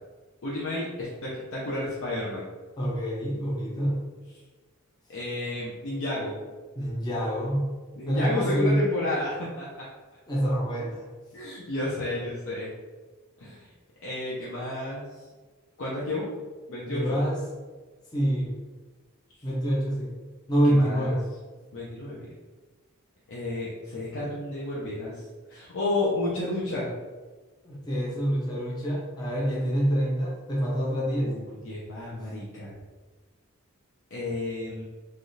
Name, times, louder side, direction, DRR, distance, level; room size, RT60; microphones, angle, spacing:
voice 1, 0.4-2.4 5.1-6.4 8.0-9.9 11.3-12.7 13.4-13.7 14.0-15.0 15.8-16.3 16.7-17.2 20.6-21.1 21.7-22.3 23.3-25.2 25.5-26.9 31.0-32.8 34.1-34.8, left 2 dB, 60° left, -7 dB, 0.6 m, -31 dB
voice 2, 2.8-4.0 6.8-7.7 8.1-8.8 10.3-11.0 16.9-17.4 18.1-18.5 19.4-20.1 20.5-21.2 27.6-31.3, equal, 20° left, -6 dB, 0.6 m, -26 dB
3.3 x 2.4 x 2.6 m, 1.3 s
head